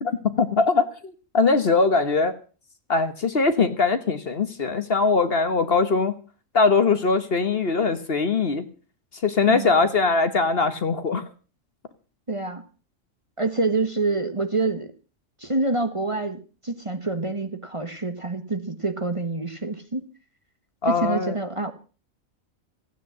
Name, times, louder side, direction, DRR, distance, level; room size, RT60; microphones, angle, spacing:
voice 1, 0.0-2.3 2.9-6.2 6.5-8.7 9.2-11.2 20.8-21.3, left 4 dB, 50° left, 10 dB, 1.3 m, -21 dB
voice 2, 12.3-12.6 13.4-14.9 15.4-20.1 20.9-21.7, right 3 dB, 25° right, 8 dB, 1.3 m, -27 dB
15.5 x 9.4 x 7.5 m, 0.38 s
omnidirectional pair, 1.4 m